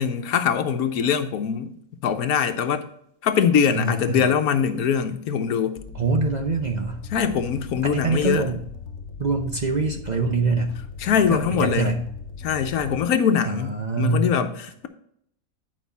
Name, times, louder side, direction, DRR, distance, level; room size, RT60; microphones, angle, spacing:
voice 1, 0.0-1.7 2.0-2.8 3.2-5.8 7.1-8.5 11.0-11.9 12.4-14.9, left 7 dB, 85° left, 1.3 m, -22 dB
voice 2, 3.7-4.3 5.9-7.0 7.8-8.6 9.2-10.8 11.3-12.0 13.5-14.4, right 3 dB, 40° right, 0.7 m, -24 dB
sound 1, 5.8-13.1, left 5 dB, 60° left, 1.0 m, -38 dB
9.3 x 5.4 x 4.1 m
omnidirectional pair, 1.5 m